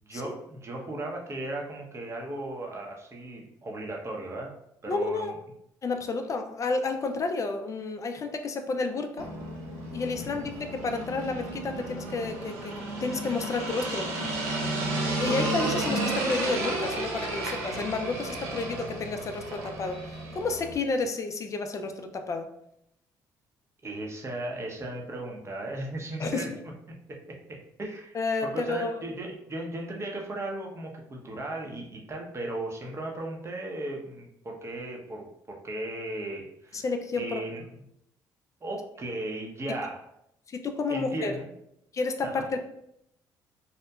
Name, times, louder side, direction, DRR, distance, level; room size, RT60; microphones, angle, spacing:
voice 1, 0.0-4.5 4.8-5.3 10.2-10.5 23.8-26.5 26.9-36.8 37.1-37.7 38.6-40.0 40.9-41.5 42.2-42.4, right 2 dB, 30° right, 0 dB, 0.7 m, -36 dB
voice 2, 4.9-5.3 5.8-9.3 9.9-10.5 10.8-14.1 15.2-22.5 26.2-26.5 28.1-29.0 36.7-37.4 40.5-41.3 41.9-42.7, left 3 dB, 35° left, 6 dB, 0.3 m, -31 dB
sound 1, 9.2-20.7, right 2 dB, 90° right, 0.5 m, -32 dB
2.8 x 2.1 x 2.2 m, 0.78 s
supercardioid pair, 70°, 9 cm